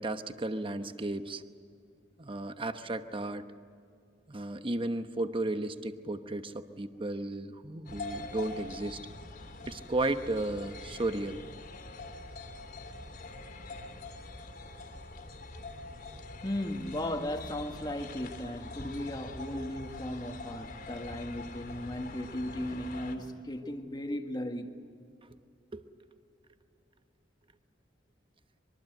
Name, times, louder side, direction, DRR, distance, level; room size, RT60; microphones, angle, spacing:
voice 1, 0.0-1.4 2.2-3.5 4.3-9.0 9.6-11.4 25.7-25.8, right 2 dB, 30° right, 1.0 m, -34 dB
sound 1, 7.9-23.2, left 2 dB, 55° left, 3.2 m, -44 dB
voice 2, 16.4-24.7, left 1 dB, 25° left, 1.6 m, -36 dB
25.0 x 23.0 x 7.9 m
head